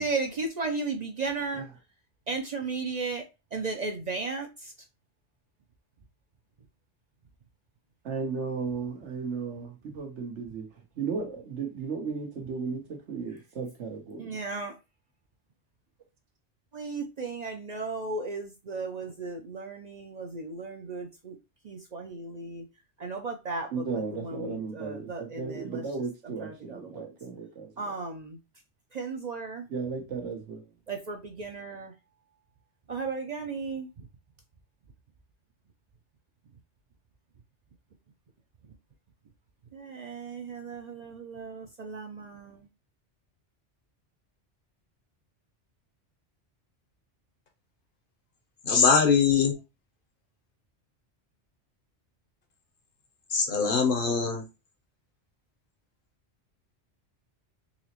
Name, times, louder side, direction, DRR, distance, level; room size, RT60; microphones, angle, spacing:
voice 1, 0.0-1.7 2.3-3.2 3.5-4.7 14.2-14.7 16.7-21.4 21.6-22.7 23.0-25.8 26.2-27.1 27.8-28.4 28.9-29.7 30.9-31.9 32.9-33.9 39.7-42.7, right 3 dB, 50° right, 0.5 m, -35 dB
voice 2, 8.0-10.7 11.0-14.4 23.7-27.9 29.7-30.6, right 5 dB, 85° right, 1.3 m, -35 dB
voice 3, 48.7-49.6 53.3-54.4, left 5 dB, 55° left, 0.9 m, -22 dB
4.0 x 2.9 x 2.9 m
omnidirectional pair, 1.2 m